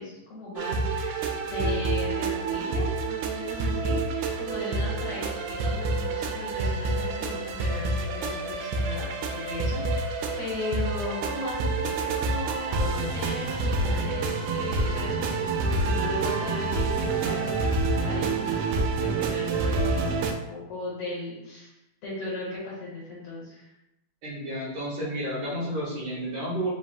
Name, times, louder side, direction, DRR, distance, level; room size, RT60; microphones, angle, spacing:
voice 1, 0.0-17.8 18.0-21.7 22.0-23.7, left 2 dB, 60° left, -7 dB, 2.1 m, -37 dB
sound 1, 0.6-20.3, right 3 dB, 85° right, 2.0 m, -28 dB
voice 2, 24.2-26.7, right 1 dB, 65° right, -7 dB, 2.3 m, -31 dB
5.0 x 2.3 x 3.5 m, 0.89 s
omnidirectional pair, 3.4 m